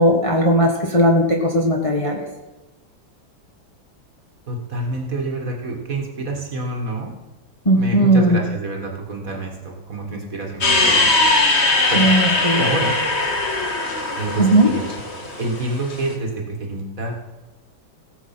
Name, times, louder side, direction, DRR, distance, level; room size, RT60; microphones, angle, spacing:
voice 1, 0.0-2.2 7.6-8.4 11.9-12.6 14.4-14.7, right 1 dB, 20° left, -1 dB, 1.5 m, -17 dB
voice 2, 4.5-7.2 7.7-11.1 11.9-12.2 12.6-13.0 14.1-14.8 15.4-17.1, right 2 dB, 45° right, 2 dB, 2.1 m, -27 dB
sound 1, 10.6-16.0, left 2 dB, 35° left, 1.7 m, -20 dB
17.5 x 7.1 x 5.8 m, 1.1 s
omnidirectional pair, 2.1 m